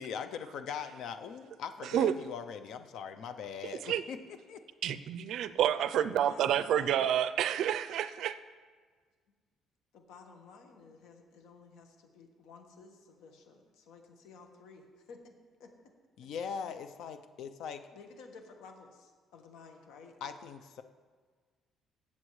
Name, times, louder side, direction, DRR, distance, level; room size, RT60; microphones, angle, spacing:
voice 1, 0.0-4.2 4.5-4.6 16.2-17.8 20.2-20.8, left 7 dB, 65° left, 9 dB, 0.5 m, -41 dB
voice 2, 1.8-2.1 3.6-4.0 4.8-8.4, right 10 dB, 60° right, 14 dB, 0.4 m, -29 dB
voice 3, 6.2-7.1 9.9-15.3 15.6-15.7 17.9-20.2, left 4 dB, 85° left, 4 dB, 1.3 m, -53 dB
16.0 x 7.2 x 3.2 m, 1.5 s
cardioid pair, 160°, 0 cm